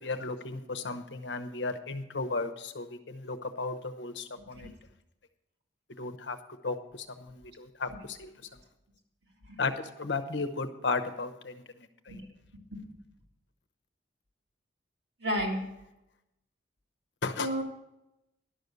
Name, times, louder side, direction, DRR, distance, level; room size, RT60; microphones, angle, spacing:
voice 1, 0.0-4.7 6.0-6.4 6.6-8.3 9.6-9.7 10.0-12.2 17.2-17.5, left 3 dB, 70° left, 8 dB, 0.9 m, -35 dB
voice 2, 4.4-4.7 9.5-9.6 12.1-12.3 12.7-12.9 15.2-15.6 17.4-17.6, equal, 60° right, -1 dB, 2.3 m, -33 dB
11.5 x 6.5 x 6.8 m, 0.89 s
head